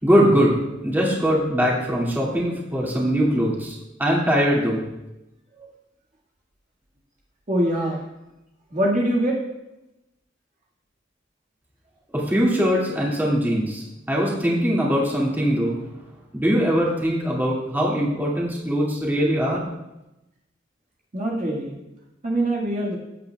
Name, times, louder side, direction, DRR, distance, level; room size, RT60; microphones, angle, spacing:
voice 1, 0.0-0.6 0.8-4.8 12.1-15.8 16.3-19.6, equal, 10° right, -5 dB, 2.2 m, -21 dB
voice 2, 7.5-8.0 8.7-9.4 21.1-21.8 22.2-23.0, right 1 dB, 40° right, -4 dB, 1.8 m, -23 dB
15.0 x 8.6 x 2.3 m, 0.94 s
head